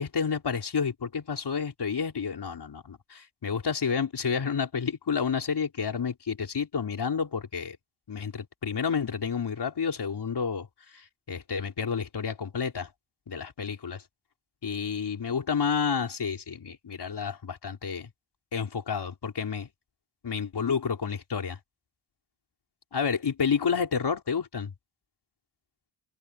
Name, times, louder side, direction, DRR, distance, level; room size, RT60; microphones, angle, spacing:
voice 1, 0.0-7.8 8.1-10.7 10.9-11.0 11.3-12.9 13.3-14.0 14.6-18.1 18.5-19.7 20.2-21.6 22.9-24.7, left 6 dB, 70° left, 5.1 m, -30 dB
cardioid pair, 70°, 42 cm